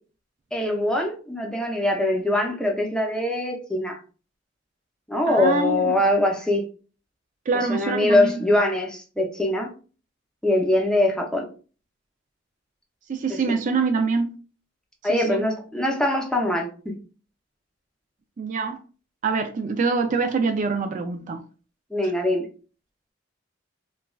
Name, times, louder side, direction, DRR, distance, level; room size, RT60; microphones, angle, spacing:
voice 1, 0.5-4.0 5.1-6.7 7.5-9.7 10.4-11.5 13.3-13.4 15.0-16.9 21.9-22.5, left 1 dB, 5° left, 0.6 m, -23 dB
voice 2, 5.3-6.0 7.5-8.4 13.1-14.4 15.1-15.4 18.4-18.8 19.2-21.4 22.0-22.1, right 4 dB, 40° right, 0.3 m, -25 dB
3.1 x 2.3 x 2.3 m
head